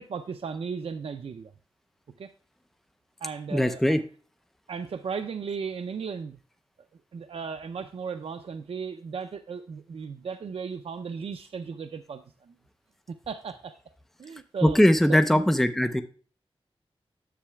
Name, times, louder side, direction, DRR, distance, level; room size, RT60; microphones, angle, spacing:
voice 1, 0.0-1.5 2.2-2.3 3.2-4.0 4.7-6.4 7.1-12.6 13.1-13.8 14.2-14.8 15.1-15.4, right 6 dB, 75° right, 9 dB, 0.5 m, -36 dB
voice 2, 3.5-4.0 14.6-16.0, equal, 5° left, 9 dB, 0.6 m, -20 dB
10.0 x 7.5 x 2.2 m, 0.41 s
wide cardioid pair, 80°, 10 cm